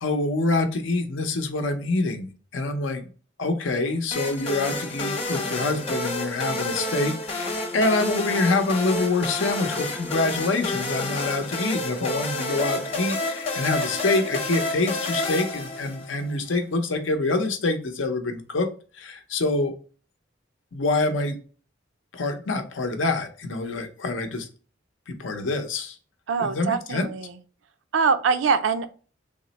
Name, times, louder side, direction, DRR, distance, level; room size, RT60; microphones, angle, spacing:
voice 1, 0.0-3.0 3.4-18.7 18.9-19.7 20.7-21.3 22.1-24.5 25.1-26.0 26.4-27.1, left 2 dB, 80° left, 7 dB, 0.6 m, -26 dB
sound 1, 4.1-16.3, left 2 dB, 35° left, 0.8 m, -29 dB
voice 2, 26.3-27.4 27.9-28.9, right 5 dB, 80° right, 11 dB, 0.4 m, -23 dB
3.5 x 2.0 x 3.9 m, 0.40 s
head